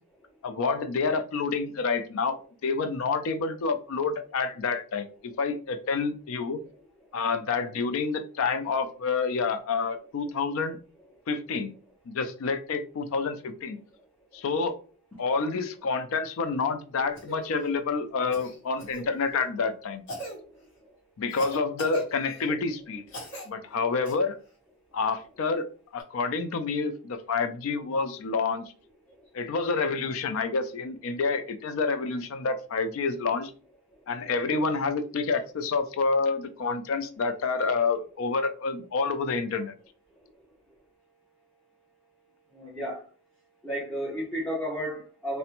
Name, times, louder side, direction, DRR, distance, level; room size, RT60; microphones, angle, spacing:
voice 1, 0.4-6.6 7.1-10.8 11.3-11.7 12.1-13.8 14.3-14.8 15.2-20.0 21.2-23.0 23.5-24.4 24.9-25.6 25.9-28.7 29.3-33.5 34.1-39.7, left 4 dB, 70° left, 9 dB, 0.4 m, -28 dB
Cough, 17.1-17.4 18.3-19.0 20.1-20.4 21.3-22.5 23.1-23.5 24.0-24.1 26.0-26.1, right 1 dB, 55° left, 1.1 m, -39 dB
voice 2, 42.5-43.0 43.6-45.4, equal, 10° left, -7 dB, 0.7 m, -32 dB
2.5 x 2.1 x 2.9 m, 0.39 s
head